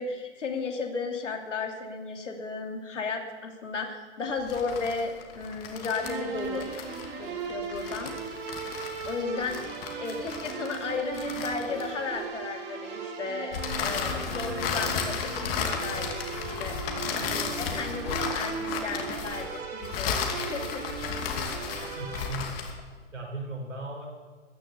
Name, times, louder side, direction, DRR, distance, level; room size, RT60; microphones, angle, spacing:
voice 1, 0.0-6.7 7.2-8.1 9.1-9.6 10.0-20.8, left 4 dB, 80° left, 3 dB, 2.9 m, -34 dB
sound 1, 4.4-12.2 13.5-22.8, left 6 dB, 50° left, 2.6 m, -34 dB
sound 2, 5.9-22.3, right 5 dB, 30° right, 4.8 m, -37 dB
voice 2, 21.9-22.5 23.1-24.1, right 2 dB, 90° right, 1 dB, 5.2 m, -36 dB
14.5 x 9.7 x 8.2 m, 1.4 s
hypercardioid pair, 125°, 36 cm